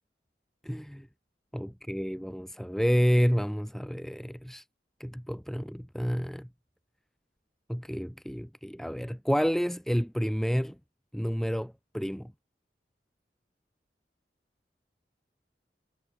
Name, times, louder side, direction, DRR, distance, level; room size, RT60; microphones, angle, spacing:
voice 1, 0.6-1.1 1.5-4.6 5.0-6.5 7.7-10.7 11.1-12.3, equal, ahead, 2.5 m, -29 dB
head